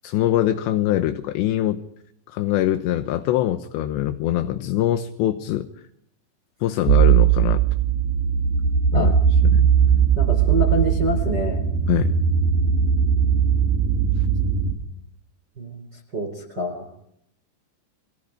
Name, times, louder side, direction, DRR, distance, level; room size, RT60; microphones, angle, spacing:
voice 1, 0.0-1.8 2.3-5.7 6.6-7.6 8.9-9.1 9.5-10.1 11.9-12.1, left 12 dB, 75° left, 8 dB, 3.2 m, -23 dB
sound 1, 6.9-14.7, right 8 dB, 65° right, 4.6 m, -19 dB
voice 2, 10.2-11.6 15.6-15.8 16.1-16.9, equal, 25° right, 4 dB, 4.0 m, -26 dB
28.5 x 25.5 x 5.1 m, 0.73 s
omnidirectional pair, 5.2 m